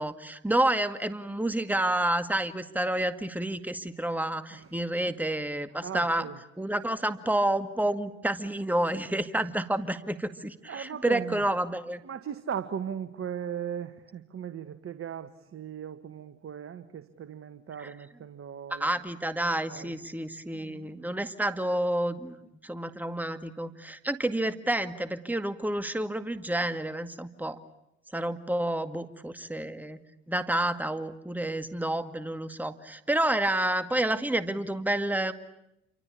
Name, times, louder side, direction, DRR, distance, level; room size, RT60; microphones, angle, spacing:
voice 1, 0.0-6.3 6.6-12.0 17.8-17.9 18.7-22.4 22.6-27.6 28.1-30.0 30.3-35.3, right 1 dB, 5° right, 10 dB, 2.0 m, -29 dB
voice 2, 5.8-6.4 10.7-11.5 12.0-18.9 19.7-20.0 20.5-21.1, right 8 dB, 45° right, 10 dB, 1.8 m, -38 dB
28.0 x 25.0 x 8.6 m, 0.83 s
hypercardioid pair, 60°, 32 cm